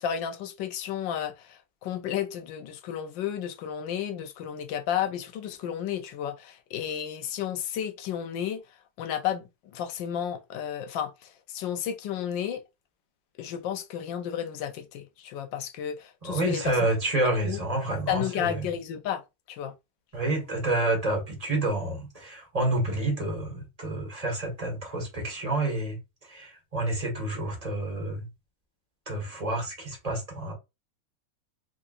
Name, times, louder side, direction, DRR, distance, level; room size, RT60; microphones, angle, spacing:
voice 1, 0.0-8.6 9.0-12.6 13.4-16.9 17.4-17.6 18.1-19.2 19.5-19.7, left 9 dB, 75° left, 1.3 m, -32 dB
voice 2, 16.2-18.7 20.1-26.0 26.3-28.3 29.1-30.5, right 2 dB, 20° right, 1.5 m, -29 dB
3.8 x 3.5 x 2.4 m
omnidirectional pair, 2.1 m